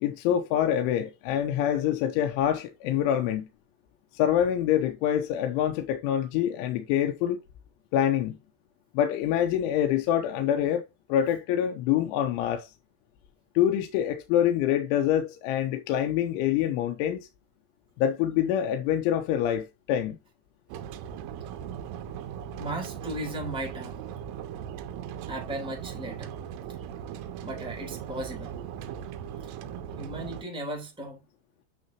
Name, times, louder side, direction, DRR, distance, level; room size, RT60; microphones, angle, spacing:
voice 1, 0.0-3.5 4.1-7.4 7.9-8.4 8.9-10.8 11.1-12.7 13.6-17.3 18.0-20.2, left 10 dB, 85° left, 3.2 m, -26 dB
sound 1, 20.7-30.4, right 9 dB, 85° right, 3.4 m, -39 dB
voice 2, 22.6-24.0 25.3-26.3 27.4-28.5 29.4-29.5 30.0-31.2, right 1 dB, ahead, 2.2 m, -36 dB
9.4 x 6.5 x 2.8 m
omnidirectional pair, 5.5 m